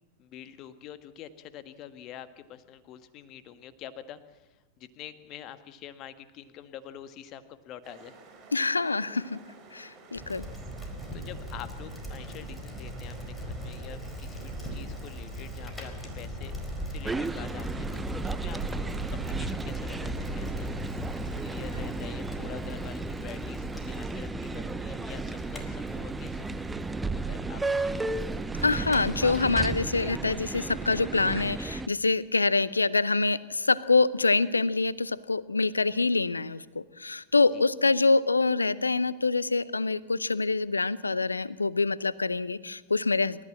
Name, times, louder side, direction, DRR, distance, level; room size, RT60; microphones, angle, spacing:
voice 1, 0.2-4.5 4.8-8.2 11.1-16.5 16.9-20.7 21.4-26.5 27.1-28.1 37.5-37.6, left 10 dB, 35° left, 11 dB, 1.5 m, -46 dB
sound 1, 7.8-22.1, right 4 dB, 35° right, 5.6 m, -53 dB
voice 2, 8.5-9.4 9.7-10.5 28.6-43.4, left 3 dB, 80° left, 20 dB, 0.7 m, -25 dB
Bicycle, 10.1-30.1, equal, 10° left, 4.5 m, -38 dB
sound 2, 17.0-31.9, right 3 dB, 10° right, 0.8 m, -34 dB
28.0 x 14.0 x 7.6 m, 1.2 s
figure-of-eight pair, 90°, 0 cm